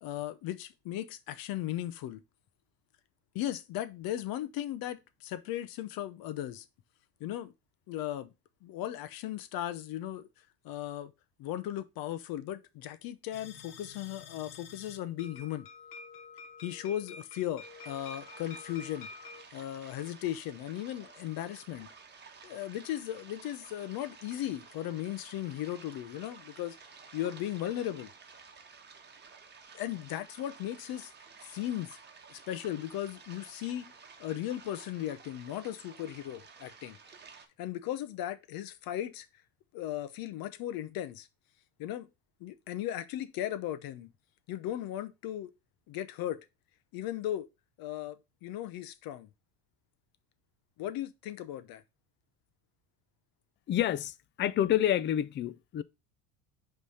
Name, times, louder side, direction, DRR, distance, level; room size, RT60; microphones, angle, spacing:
voice 1, 0.0-2.2 3.3-6.7 7.2-7.5 7.9-8.3 8.6-10.3 10.6-11.1 11.4-15.7 16.6-19.1 19.5-21.9 22.4-26.8 27.1-28.1 29.7-31.1 31.4-32.0 32.3-33.9 34.2-37.0 37.6-39.3 39.7-41.3 41.8-42.1 42.4-44.1 44.5-45.5 45.9-46.4 46.9-47.5 47.8-49.3 50.8-51.8, left 12 dB, 50° left, 0.9 m, -37 dB
sound 1, 13.3-19.4, left 5 dB, 90° left, 1.1 m, -49 dB
sound 2, 17.6-37.5, right 5 dB, 25° right, 1.3 m, -53 dB
voice 2, 53.7-55.8, left 11 dB, 25° left, 0.4 m, -28 dB
5.3 x 3.4 x 5.5 m
hypercardioid pair, 90°, 44 cm